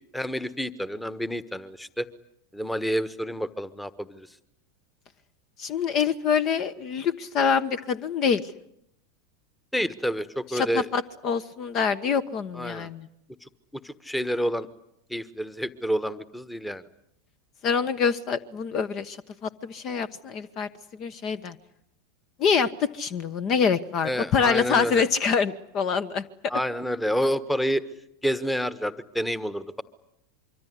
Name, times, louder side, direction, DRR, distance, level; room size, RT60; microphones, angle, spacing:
voice 1, 0.1-2.1 2.5-4.3 9.7-10.8 12.5-12.9 13.8-14.7 15.1-16.8 24.0-25.0 26.5-27.8 28.2-29.8, equal, 5° left, 16 dB, 1.4 m, -28 dB
voice 2, 5.6-8.5 10.5-13.1 17.6-19.2 19.4-20.7 21.0-21.6 22.4-26.2, left 6 dB, 40° left, 14 dB, 1.2 m, -25 dB
25.0 x 24.5 x 9.6 m, 0.76 s
figure-of-eight pair, 85°, 0 cm